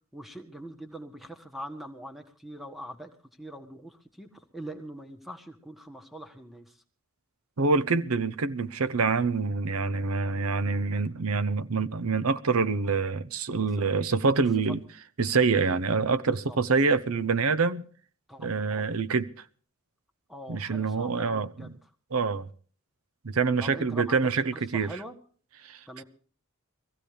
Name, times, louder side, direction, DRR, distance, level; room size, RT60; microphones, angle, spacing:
voice 1, 0.1-6.8 13.6-13.8 14.4-14.5 16.1-16.6 18.3-18.9 20.3-21.8 23.6-24.4 24.7-25.1 25.9-26.0, equal, ahead, 1.6 m, -43 dB
voice 2, 7.6-14.8 15.2-17.8 18.4-19.3 20.5-21.7 22.1-22.5 23.2-25.0 25.6-25.8, right 4 dB, 85° right, 0.8 m, -26 dB
23.0 x 15.5 x 3.4 m
head